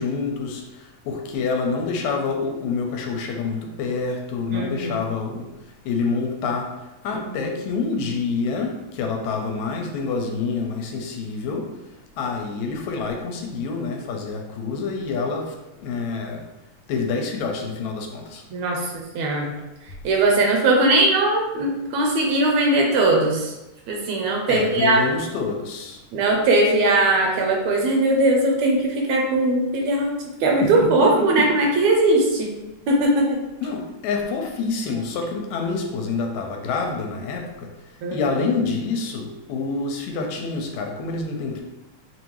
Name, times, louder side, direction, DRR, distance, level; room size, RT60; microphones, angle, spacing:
voice 1, 0.0-5.5 5.9-11.8 12.2-16.4 16.9-18.4 24.5-26.0 30.6-31.5 33.6-37.7 38.1-41.6, left 4 dB, 80° left, 2 dB, 1.9 m, -27 dB
voice 2, 4.5-5.0 7.3-7.5 18.5-19.5 20.0-23.5 23.9-25.0 26.1-30.2 30.4-32.5 32.9-33.4 38.0-38.3, right 2 dB, 75° right, 1 dB, 1.8 m, -20 dB
5.4 x 2.6 x 3.0 m, 1.0 s
omnidirectional pair, 3.3 m